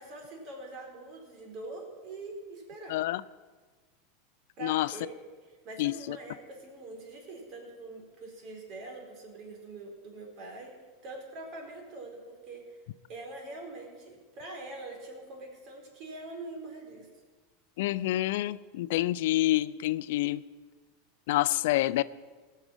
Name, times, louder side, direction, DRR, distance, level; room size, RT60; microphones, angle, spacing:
voice 1, 0.0-3.0 4.6-5.2 5.4-10.7 11.0-12.8 13.1-17.1, right 2 dB, 45° right, 1 dB, 4.1 m, -44 dB
voice 2, 2.9-3.2 4.6-4.9 5.8-6.2 17.8-20.4 21.3-22.0, left 16 dB, 70° left, 17 dB, 0.4 m, -27 dB
17.0 x 6.6 x 7.3 m, 1.4 s
supercardioid pair, 115°, 0 cm